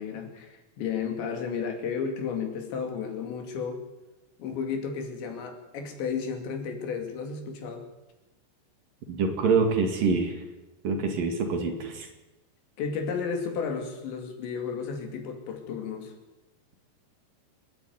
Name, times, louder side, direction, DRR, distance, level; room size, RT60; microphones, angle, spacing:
voice 1, 0.0-3.8 4.4-7.8 12.8-16.1, left 6 dB, 80° left, 4 dB, 4.8 m, -33 dB
voice 2, 9.1-10.4 10.8-12.1, right 4 dB, 55° right, 4 dB, 3.7 m, -25 dB
27.5 x 11.0 x 9.5 m, 1.0 s
omnidirectional pair, 5.1 m